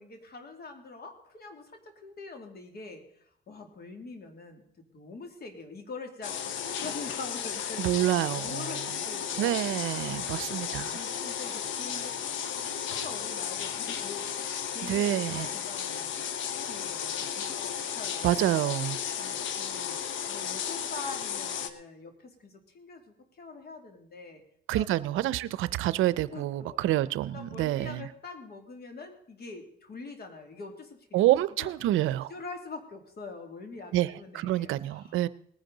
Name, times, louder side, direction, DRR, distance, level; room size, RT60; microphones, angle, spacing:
voice 1, 0.0-9.6 10.0-10.4 10.9-16.2 16.6-18.4 19.2-20.0 20.3-24.4 24.7-24.9 26.3-26.8 27.3-31.2 31.6-31.7 32.3-35.2, left 3 dB, 50° left, 5 dB, 2.6 m, -44 dB
sound 1, 6.2-21.7, left 8 dB, 75° left, 1.0 m, -34 dB
voice 2, 7.8-8.6 9.4-10.9 14.9-15.5 18.2-19.0 24.7-28.1 31.1-32.3 33.9-35.3, right 14 dB, 85° right, 17 dB, 0.5 m, -27 dB
19.5 x 10.0 x 4.0 m, 0.66 s
cardioid pair, 90°, 20 cm